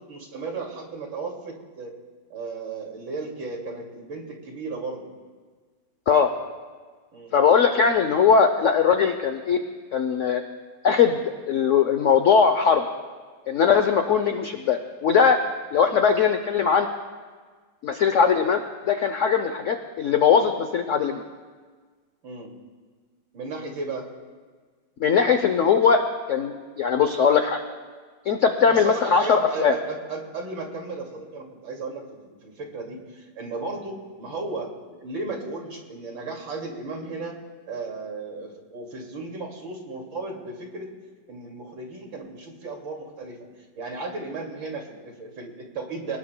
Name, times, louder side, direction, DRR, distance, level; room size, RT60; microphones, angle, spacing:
voice 1, 0.0-1.9 2.3-5.1 7.1-7.3 14.2-14.4 15.8-15.9 22.2-22.5 23.3-24.1 28.7-37.3 37.7-40.9 41.3-43.5 43.8-46.2, right 3 dB, 75° right, 1 dB, 3.1 m, -35 dB
voice 2, 7.3-9.6 9.9-10.4 10.8-12.8 13.5-15.4 15.7-16.9 17.8-18.6 18.9-21.2 25.0-27.6 28.3-29.7, left 6 dB, 70° left, 7 dB, 0.7 m, -20 dB
26.0 x 19.0 x 2.2 m, 1.5 s
omnidirectional pair, 2.2 m